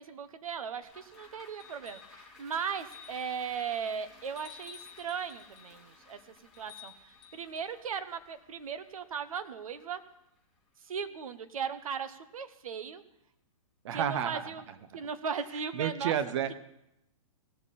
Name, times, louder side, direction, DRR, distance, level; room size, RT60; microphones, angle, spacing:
voice 1, 0.0-6.2 6.6-6.9 7.3-10.0 10.8-13.0 13.9-14.6 14.9-16.1, right 6 dB, 75° right, 11 dB, 1.1 m, -37 dB
sound 1, 0.8-11.3 11.7-11.8, left 3 dB, ahead, 3.4 m, -58 dB
sound 2, 1.6-2.2 2.8-3.4 4.4-5.7 6.5-7.7 9.4-9.5, left 8 dB, 25° left, 3.0 m, -52 dB
voice 2, 13.8-15.0 15.7-16.5, right 9 dB, 55° right, 11 dB, 1.1 m, -32 dB
19.0 x 7.3 x 4.2 m, 0.83 s
hypercardioid pair, 140°, 18 cm